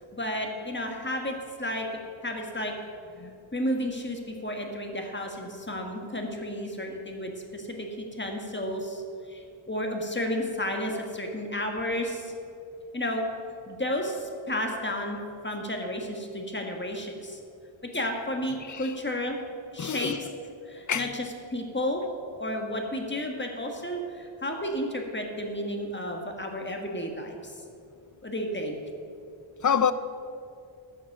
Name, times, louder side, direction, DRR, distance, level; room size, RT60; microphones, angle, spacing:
voice 1, 0.1-1.9 2.2-2.7 3.5-9.0 9.3-12.3 12.9-13.2 13.7-17.4 17.9-19.4 19.7-20.1 20.7-22.0 22.4-27.5 28.2-28.8, left 1 dB, 20° left, 1.6 m, -32 dB
voice 2, 19.8-20.2 20.9-21.1 29.6-29.9, left 7 dB, 40° left, 0.5 m, -26 dB
13.0 x 7.4 x 6.0 m
wide cardioid pair, 80°, 50 cm